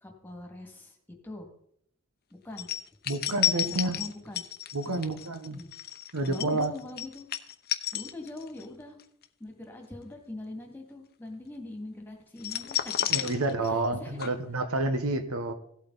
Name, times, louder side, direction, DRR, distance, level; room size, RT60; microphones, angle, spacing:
voice 1, 0.0-1.0 1.2-1.5 2.3-2.7 3.3-4.4 4.9-5.2 5.5-5.7 6.1-7.3 7.9-9.0 9.4-12.9 13.6-14.3, left 2 dB, 10° left, 3 dB, 2.2 m, -42 dB
sound 1, 2.6-8.7 9.0-9.2 12.4-13.9 14.2-14.3, left 11 dB, 45° left, 0.8 m, -31 dB
voice 2, 3.1-4.0 4.7-5.6 6.1-6.7 13.1-15.5, right 2 dB, 75° right, 9 dB, 1.1 m, -29 dB
16.0 x 8.5 x 4.0 m, 0.69 s
head